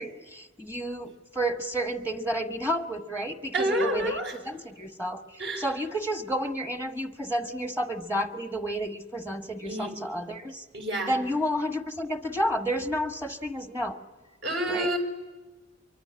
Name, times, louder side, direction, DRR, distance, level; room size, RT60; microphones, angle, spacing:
voice 1, 0.0-4.2 4.4-10.6 11.1-14.0 14.7-14.9, equal, 10° right, 6 dB, 1.2 m, -31 dB
voice 2, 3.5-4.3 5.4-5.7 9.6-9.9 10.7-11.2 14.4-15.0, right 1 dB, 60° right, 4 dB, 5.6 m, -28 dB
24.0 x 24.0 x 9.7 m, 1.2 s
head